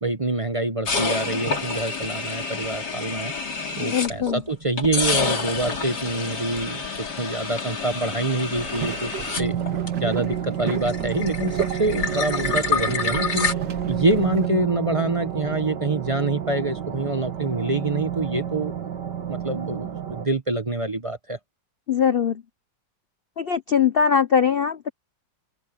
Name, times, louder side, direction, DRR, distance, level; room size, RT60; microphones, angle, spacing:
voice 1, 0.0-3.3 3.7-9.1 9.4-9.6 10.0-13.5 13.9-18.7 19.3-21.4, right 2 dB, 25° right, 0.7 m, -26 dB
sound 1, 0.9-4.4 4.8-10.3 10.6-13.5, left 4 dB, 65° left, 3.4 m, -28 dB
voice 2, 3.8-4.4 21.9-22.4 23.4-24.9, left 7 dB, 85° left, 0.5 m, -21 dB
sound 2, 8.5-14.5, right 8 dB, 85° right, 2.1 m, -34 dB
sound 3, 9.4-20.3, right 9 dB, 70° right, 2.2 m, -30 dB
open air
omnidirectional pair, 1.9 m